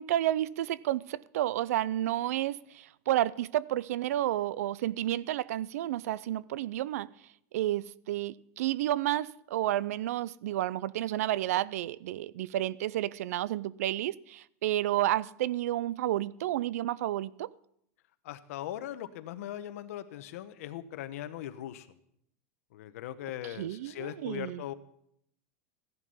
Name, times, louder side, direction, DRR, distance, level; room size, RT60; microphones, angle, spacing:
voice 1, 0.0-7.1 7.5-17.5 23.6-24.6, right 13 dB, 80° right, 0.5 m, -31 dB
voice 2, 18.2-21.9 22.7-24.7, left 12 dB, 70° left, 1.1 m, -40 dB
15.0 x 11.0 x 5.5 m
supercardioid pair, 160°, 8 cm